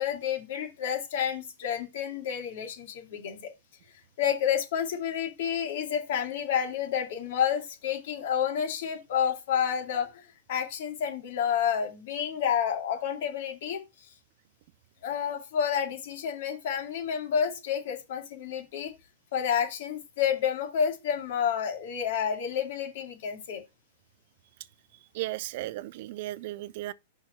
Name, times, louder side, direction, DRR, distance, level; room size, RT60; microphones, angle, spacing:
voice 1, 0.0-3.4 4.2-10.1 10.5-13.8 15.0-18.9 19.3-23.6, left 8 dB, 60° left, 2.6 m, -29 dB
voice 2, 25.1-26.9, right 16 dB, 50° right, 0.4 m, -35 dB
5.8 x 4.4 x 6.4 m
supercardioid pair, 150°, 0 cm